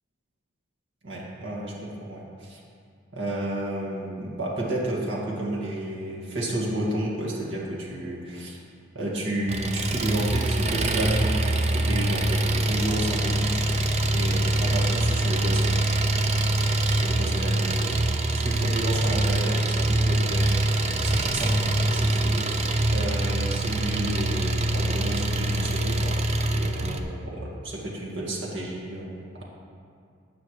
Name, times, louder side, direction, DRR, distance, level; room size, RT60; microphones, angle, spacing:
voice 1, 1.0-2.6 3.1-8.6 8.9-13.6 14.1-15.7 16.2-16.5 16.7-17.9 18.3-26.2 26.4-29.4, right 1 dB, 65° right, -4 dB, 2.0 m, -32 dB
Engine, 9.5-27.0, right 2 dB, 35° right, 0.6 m, -24 dB
13.0 x 8.8 x 3.2 m, 2.3 s
head